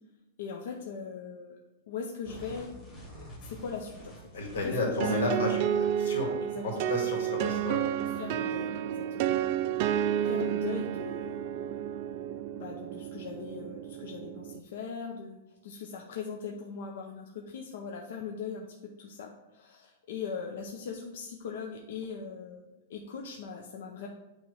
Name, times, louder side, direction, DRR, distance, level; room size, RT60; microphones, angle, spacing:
voice 1, 0.4-1.6 1.9-2.7 3.1-4.2 4.6-5.5 6.4-6.9 8.2-9.3 10.3-11.4 12.5-24.1, left 6 dB, 55° left, 1 dB, 0.7 m, -40 dB
sound 1, 2.2-4.9, equal, 10° left, 1.4 m, -47 dB
voice 2, 4.3-5.6 6.0-6.3 6.6-7.8, left 2 dB, 80° left, 0 dB, 2.2 m, -31 dB
sound 2, 5.0-14.6, right 10 dB, 35° right, 0.3 m, -31 dB
8.7 x 3.1 x 4.8 m, 1.1 s
supercardioid pair, 175°, 0 cm